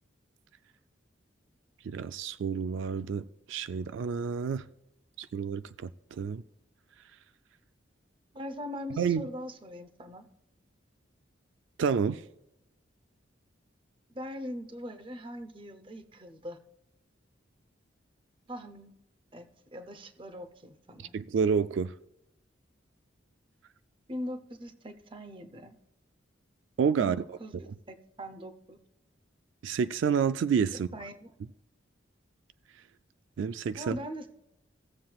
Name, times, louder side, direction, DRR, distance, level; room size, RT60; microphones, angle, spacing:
voice 1, 1.8-4.6 5.2-5.9 6.2-6.4 9.0-9.3 11.8-12.2 21.1-21.9 26.8-27.2 29.6-30.9 33.4-34.0, right 6 dB, 80° right, 0.3 m, -29 dB
voice 2, 8.3-10.3 14.1-16.6 18.5-18.9 19.3-21.1 24.1-25.8 27.0-28.8 30.9-31.3 33.8-34.3, equal, 25° right, 0.7 m, -41 dB
16.5 x 7.5 x 2.3 m
head